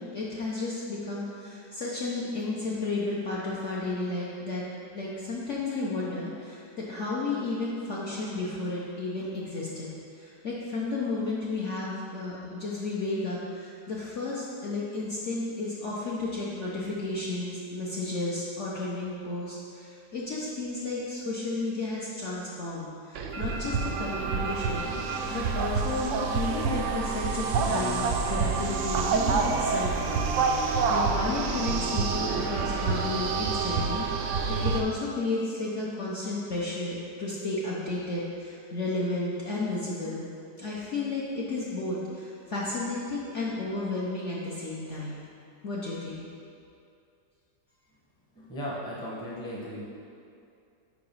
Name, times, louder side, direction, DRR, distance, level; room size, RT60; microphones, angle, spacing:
voice 1, 0.0-4.6 4.9-9.9 10.1-30.2 30.5-34.4 34.6-40.3 40.6-45.3 45.6-46.3, left 2 dB, 55° left, -6 dB, 0.9 m, -33 dB
sound 1, 23.1-34.8, right 5 dB, 80° right, 0.6 m, -27 dB
voice 2, 48.3-49.8, equal, 5° left, -5 dB, 0.7 m, -36 dB
4.9 x 4.8 x 5.4 m, 2.5 s
omnidirectional pair, 1.9 m